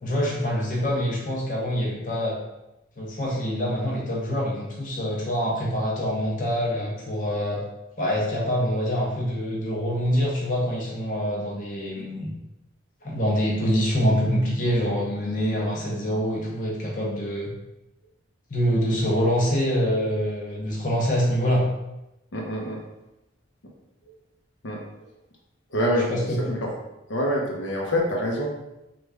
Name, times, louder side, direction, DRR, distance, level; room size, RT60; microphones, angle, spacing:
voice 1, 0.0-2.4 3.0-7.6 8.0-12.3 13.0-17.5 18.5-21.6 26.1-26.4, equal, 45° left, -3 dB, 0.6 m, -25 dB
voice 2, 22.3-22.8 24.6-24.8 25.7-26.7 27.1-28.5, equal, 80° left, -1 dB, 0.7 m, -26 dB
3.2 x 2.3 x 3.4 m, 0.93 s
head